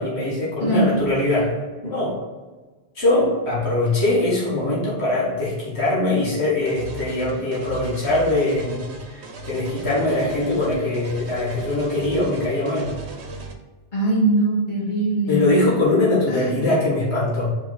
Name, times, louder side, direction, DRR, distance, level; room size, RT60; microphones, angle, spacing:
voice 1, 0.0-1.6 1.8-2.2 3.0-12.9 15.3-17.5, left 2 dB, 80° left, -6 dB, 2.0 m, -22 dB
voice 2, 0.6-1.0 13.9-15.5 16.3-16.7, right 2 dB, 45° left, -7 dB, 2.1 m, -21 dB
sound 1, 6.6-13.5, right 3 dB, 85° right, 1.0 m, -37 dB
5.1 x 5.0 x 4.0 m, 1.3 s
omnidirectional pair, 1.1 m